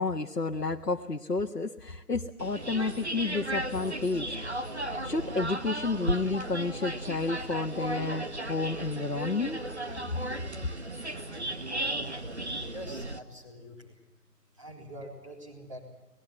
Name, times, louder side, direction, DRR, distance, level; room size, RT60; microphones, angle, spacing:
voice 1, 0.0-4.4 5.0-9.6, left 3 dB, 80° left, 1 dB, 1.5 m, -31 dB
sound 1, 2.4-13.2, right 1 dB, 45° right, 1.4 m, -35 dB
voice 2, 12.7-13.9 14.6-15.8, right 1 dB, 20° right, -1 dB, 3.8 m, -44 dB
24.0 x 20.5 x 7.9 m, 0.92 s
figure-of-eight pair, 170°, 47 cm